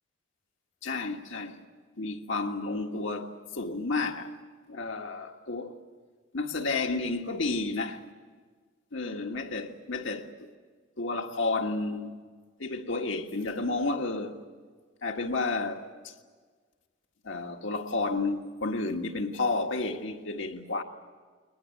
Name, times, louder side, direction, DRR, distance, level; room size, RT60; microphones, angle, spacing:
voice 1, 0.8-1.6 2.0-4.3 4.7-5.8 6.3-8.0 8.9-10.3 11.0-12.2 12.6-14.4 15.0-16.1 17.2-20.8, left 3 dB, 85° left, 1.7 m, -31 dB
22.5 x 20.0 x 9.3 m
head